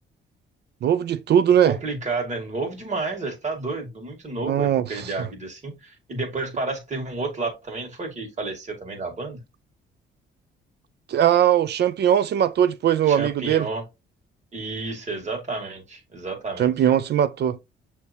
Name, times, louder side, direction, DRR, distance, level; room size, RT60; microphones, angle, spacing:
voice 1, 0.8-1.8 4.4-4.8 11.1-13.7 16.6-17.6, right 10 dB, 55° right, 0.5 m, -20 dB
voice 2, 1.6-9.4 13.1-13.8 14.5-16.7, right 3 dB, 35° right, 1.9 m, -31 dB
6.4 x 2.9 x 2.7 m
cardioid pair, 90°, 20 cm